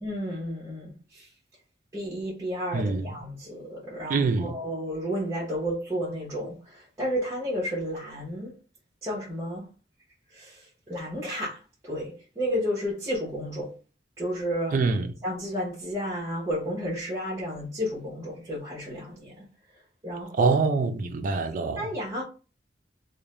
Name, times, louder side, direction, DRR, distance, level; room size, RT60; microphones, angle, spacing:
voice 1, 0.0-1.3 1.9-8.5 9.0-9.7 10.3-13.7 14.2-14.8 15.2-19.5 20.0-20.7 21.8-22.2, equal, 15° right, 0.8 m, -32 dB
voice 2, 2.7-3.1 4.1-4.6 14.7-15.1 20.4-21.9, right 4 dB, 45° right, 0.4 m, -25 dB
2.4 x 2.0 x 2.9 m
head